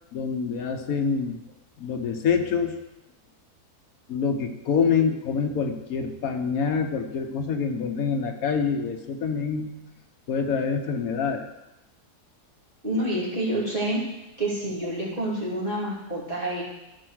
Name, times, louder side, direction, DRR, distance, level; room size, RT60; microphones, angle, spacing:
voice 1, 0.1-1.4 1.8-2.7 4.1-9.7 10.3-11.5, left 6 dB, 65° left, 4 dB, 1.4 m, -26 dB
voice 2, 12.8-14.0 14.4-16.6, right 1 dB, 35° right, -6 dB, 3.0 m, -28 dB
13.5 x 4.6 x 6.3 m, 0.95 s
omnidirectional pair, 1.7 m